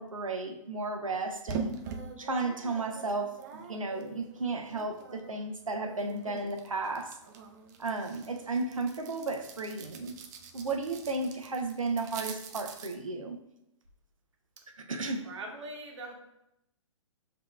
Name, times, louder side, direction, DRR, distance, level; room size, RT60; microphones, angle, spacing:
voice 1, 0.0-1.8 2.2-7.2 7.8-10.1 10.5-13.4 14.7-15.3, right 3 dB, 90° right, 4 dB, 0.6 m, -34 dB
sound 1, 1.5-5.4 5.7-13.0, right 5 dB, 35° right, 0.5 m, -43 dB
voice 2, 15.2-16.1, right 2 dB, 60° right, 1 dB, 1.1 m, -41 dB
7.4 x 2.8 x 2.3 m, 0.84 s
figure-of-eight pair, 125°, 17 cm